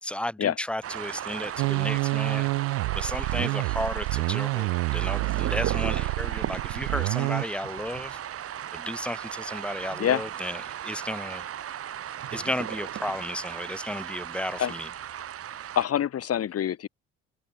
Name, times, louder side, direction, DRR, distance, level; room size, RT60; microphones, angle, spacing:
voice 1, 0.0-2.5 2.9-8.2 8.7-11.4 12.3-14.9, left 1 dB, 5° left, 0.8 m, -34 dB
sound 1, 0.8-15.9, right 10 dB, 45° right, 1.0 m, -36 dB
sound 2, 1.6-7.4, right 27 dB, 80° right, 1.3 m, -28 dB
voice 2, 15.7-16.9, left 10 dB, 45° left, 1.3 m, -25 dB
supercardioid pair, 70°, 33 cm